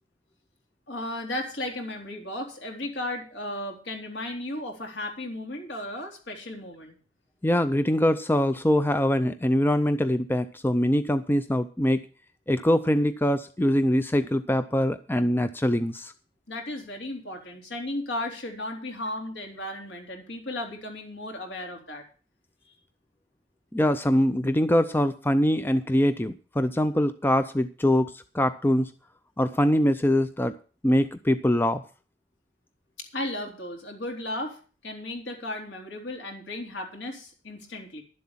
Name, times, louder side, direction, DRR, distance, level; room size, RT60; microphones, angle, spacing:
voice 1, 0.9-7.0 16.5-22.1 22.7-22.8 33.0-38.0, left 1 dB, 65° left, 2 dB, 3.7 m, -35 dB
voice 2, 7.4-12.0 12.5-16.1 23.7-28.9 29.4-30.6 30.8-31.8, left 1 dB, 10° left, 11 dB, 0.5 m, -23 dB
11.5 x 7.8 x 7.3 m, 0.37 s
head